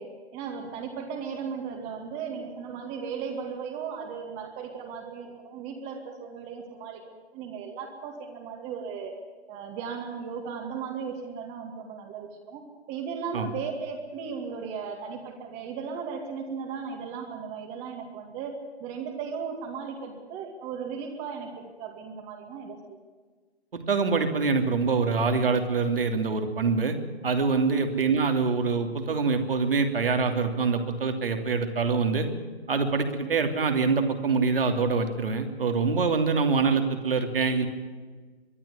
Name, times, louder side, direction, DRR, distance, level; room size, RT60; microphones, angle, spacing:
voice 1, 0.0-7.0 7.3-9.2 9.5-23.0 27.5-27.6, right 6 dB, 20° right, 3 dB, 2.2 m, -36 dB
voice 2, 23.7-27.0 27.2-32.3 32.7-37.7, right 4 dB, 55° right, 6 dB, 3.0 m, -25 dB
23.0 x 12.0 x 9.9 m, 1.4 s
figure-of-eight pair, 130°, 32 cm